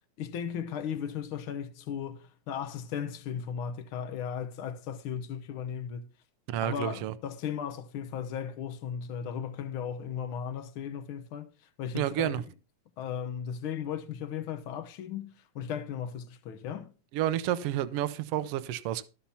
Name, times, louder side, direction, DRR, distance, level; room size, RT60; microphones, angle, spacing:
voice 1, 0.2-6.1 6.6-11.5 11.8-12.4 13.0-16.9, left 8 dB, 75° left, 1.2 m, -36 dB
voice 2, 6.5-7.1 11.9-12.4 17.1-19.0, right 12 dB, 80° right, 1.3 m, -30 dB
13.0 x 5.9 x 5.5 m
omnidirectional pair, 3.6 m